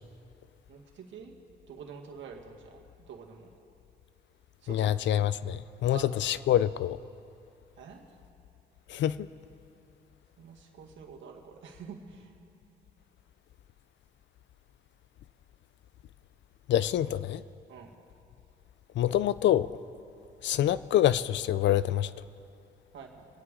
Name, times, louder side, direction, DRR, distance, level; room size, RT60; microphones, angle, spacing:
voice 1, 0.7-1.3 1.7-2.8 3.1-3.5 4.6-4.9 5.9-6.1 7.8-8.0 10.4-12.3 17.7-17.9 22.9-23.3, right 6 dB, 70° right, 1.9 m, -46 dB
voice 2, 4.7-7.0 8.9-9.3 16.7-17.4 19.0-19.7 20.4-22.1, left 11 dB, 65° left, 0.4 m, -26 dB
25.5 x 9.6 x 3.7 m
cardioid pair, 90°, 20 cm